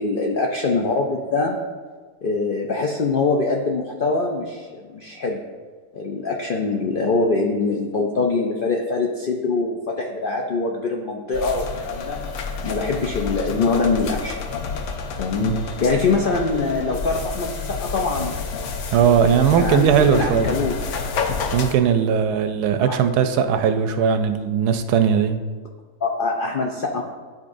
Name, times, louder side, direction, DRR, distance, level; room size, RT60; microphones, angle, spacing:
voice 1, 0.0-1.6 2.2-5.4 5.9-12.2 12.6-14.4 15.2-18.4 19.0-20.8 22.9-23.0 26.0-27.0, left 3 dB, 90° left, 1 dB, 0.4 m, -23 dB
train toilet wash Moscow to Voronezh, 11.3-21.7, left 4 dB, 65° left, 0.8 m, -29 dB
voice 2, 18.9-20.5 21.5-25.4, right 8 dB, 90° right, 8 dB, 1.1 m, -19 dB
11.5 x 3.9 x 2.6 m, 1.4 s
omnidirectional pair, 1.6 m